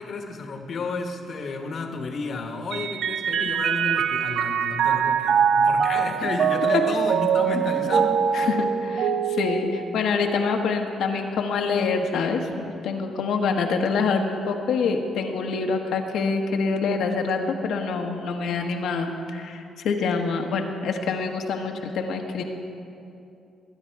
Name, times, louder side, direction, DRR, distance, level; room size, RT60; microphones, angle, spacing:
voice 1, 0.0-8.5, left 4 dB, 55° left, 4 dB, 1.4 m, -31 dB
Mallet percussion, 2.7-10.4, right 7 dB, 65° right, 0.5 m, -23 dB
voice 2, 8.3-22.4, left 4 dB, 75° left, 3 dB, 1.3 m, -26 dB
21.5 x 9.9 x 4.7 m, 2.7 s
cardioid pair, 90°, 0 cm